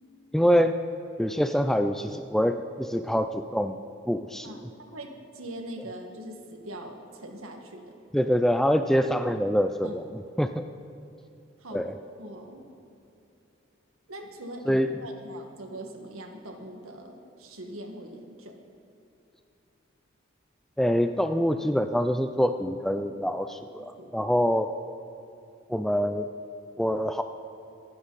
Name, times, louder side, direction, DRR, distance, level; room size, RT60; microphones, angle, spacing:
voice 1, 0.3-0.8 1.2-3.8 4.1-4.7 8.1-10.7 11.7-11.9 14.7-15.0 20.8-24.7 25.7-26.3 26.8-27.2, equal, ahead, 8 dB, 0.3 m, -25 dB
voice 2, 4.4-7.9 9.8-10.0 11.6-11.9 12.2-12.6 14.1-18.6 24.0-24.2, right 1 dB, 80° right, 3 dB, 1.9 m, -42 dB
24.5 x 11.5 x 4.1 m, 2.8 s
head